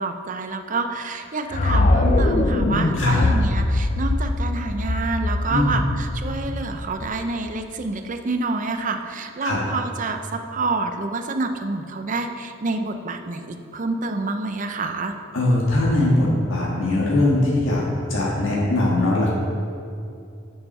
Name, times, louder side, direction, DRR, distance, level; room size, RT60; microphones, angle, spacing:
voice 1, 0.0-15.2, right 3 dB, 40° right, 6 dB, 0.6 m, -28 dB
sound 1, 1.5-7.6, left 2 dB, 35° left, 0.4 m, -22 dB
voice 2, 5.5-5.8 9.4-9.6 15.3-17.8 18.1-19.3, left 1 dB, 85° left, -5 dB, 1.7 m, -20 dB
6.9 x 6.8 x 5.4 m, 2.5 s
head